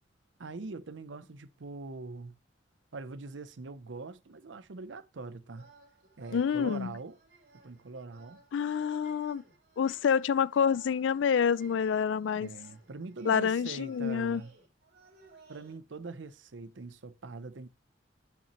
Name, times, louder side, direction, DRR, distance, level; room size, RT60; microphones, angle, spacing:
voice 1, 0.4-2.4 2.9-5.7 6.2-7.2 7.6-8.4 12.3-14.5 15.5-17.7, right 3 dB, 75° right, 0.7 m, -43 dB
sound 1, 5.5-15.7, right 3 dB, 55° right, 3.2 m, -59 dB
voice 2, 6.3-6.9 8.5-9.4 9.8-12.5 13.3-14.4, left 7 dB, 75° left, 0.3 m, -27 dB
8.6 x 5.9 x 3.0 m
head